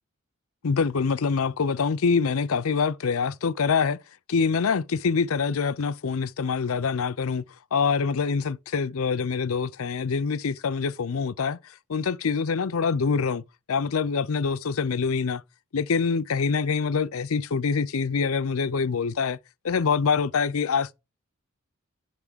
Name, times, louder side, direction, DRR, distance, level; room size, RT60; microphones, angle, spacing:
voice 1, 0.6-4.0 4.3-7.4 7.7-11.6 11.9-13.4 13.7-15.4 15.7-19.4 19.6-20.9, left 5 dB, 75° left, 0.6 m, -25 dB
11.0 x 3.6 x 6.7 m
head